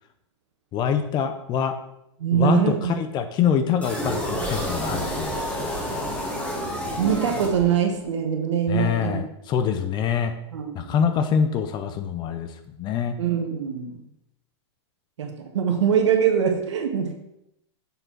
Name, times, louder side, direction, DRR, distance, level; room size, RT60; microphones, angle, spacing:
voice 1, 0.7-1.8 2.3-5.8 8.7-10.3 10.7-12.5 12.8-13.1, left 7 dB, 30° left, 9 dB, 0.5 m, -25 dB
voice 2, 2.2-3.0 7.0-9.2 10.5-11.0 13.2-14.0 15.2-17.1, right 8 dB, 85° right, 3 dB, 1.3 m, -23 dB
sound 1, 3.8-8.0, equal, 10° left, 1.5 m, -29 dB
6.6 x 4.4 x 4.5 m, 0.80 s
hypercardioid pair, 125°, 15 cm